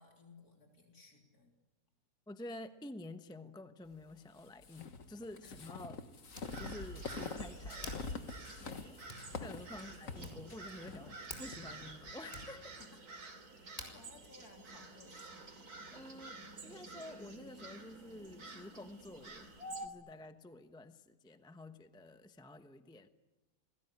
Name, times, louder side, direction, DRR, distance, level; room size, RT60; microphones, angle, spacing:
voice 1, 0.0-1.5 5.4-5.6 9.7-10.0 12.8-13.0 13.6-15.7, left 3 dB, 75° left, 2 dB, 3.9 m, -60 dB
voice 2, 2.3-6.0 6.6-9.0 9.4-12.8 15.9-19.5 19.8-23.1, left 1 dB, 5° left, 9 dB, 0.9 m, -50 dB
sound 1, 4.6-12.5, left 4 dB, 60° left, 1.9 m, -45 dB
Hands, 4.7-15.5, left 1 dB, 30° left, 5.1 m, -55 dB
sound 2, 6.4-19.9, right 2 dB, 80° right, 3.3 m, -50 dB
29.0 x 21.0 x 9.9 m, 1.1 s
omnidirectional pair, 1.6 m